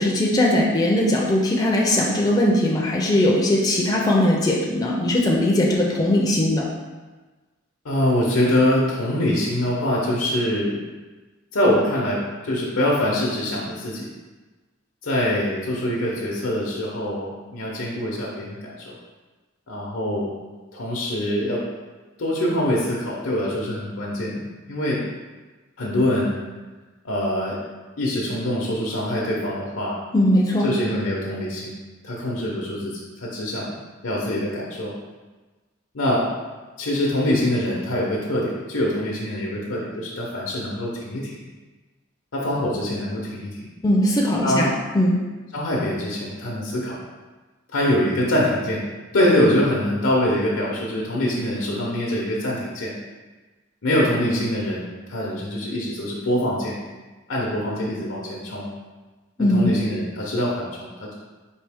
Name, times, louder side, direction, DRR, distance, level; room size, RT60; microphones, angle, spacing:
voice 1, 0.0-6.7 30.1-30.7 43.8-44.7 44.9-45.2 59.4-59.7, left 1 dB, 20° left, -2 dB, 0.4 m, -19 dB
voice 2, 7.8-10.8 11.5-14.1 15.0-19.0 19.7-20.3 20.7-21.6 22.2-25.0 25.8-26.3 27.0-27.6 28.0-30.0 30.6-31.7 32.0-33.7 34.0-34.9 35.9-36.3 36.8-41.4 42.3-43.7 44.4-44.7 45.5-46.9 47.7-48.8 49.1-52.9 53.8-56.8 57.3-58.7 59.4-61.1, left 1 dB, 80° left, -4 dB, 0.7 m, -24 dB
4.5 x 2.8 x 3.4 m, 1.3 s
head